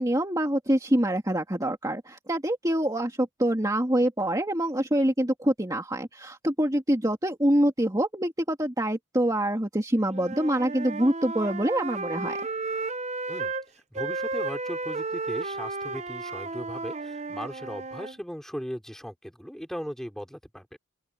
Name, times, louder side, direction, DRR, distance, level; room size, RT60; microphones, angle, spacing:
voice 1, 0.0-12.4, right 1 dB, 15° right, 2.4 m, -25 dB
Wind instrument woodwind instrument, 10.1-13.6 13.9-18.2, right 3 dB, 35° right, 0.8 m, -33 dB
voice 2, 13.9-20.8, equal, ahead, 4.2 m, -38 dB
open air
head